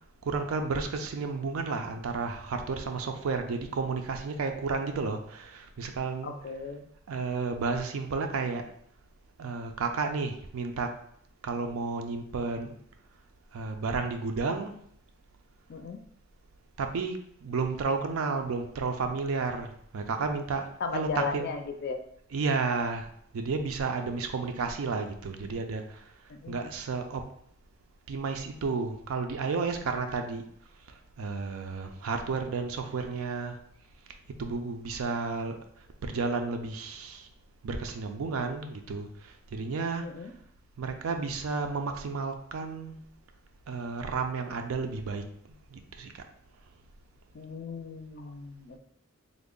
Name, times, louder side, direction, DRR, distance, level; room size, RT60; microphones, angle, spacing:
voice 1, 0.2-6.3 7.1-8.7 9.4-10.9 11.4-12.8 13.5-14.8 16.8-21.5 22.3-23.1 23.3-26.0 26.5-27.2 28.1-30.4 31.2-33.6 34.4-35.6 36.0-37.3 37.6-39.1 39.5-40.2 40.8-43.0 43.7-45.2 45.7-46.1, right 4 dB, 75° right, 6 dB, 0.4 m, -32 dB
voice 2, 6.2-6.9 15.7-16.0 20.8-22.0 26.3-26.7 40.0-40.3 47.3-48.8, left 4 dB, 50° left, 5 dB, 0.4 m, -36 dB
3.5 x 2.0 x 3.7 m, 0.67 s
head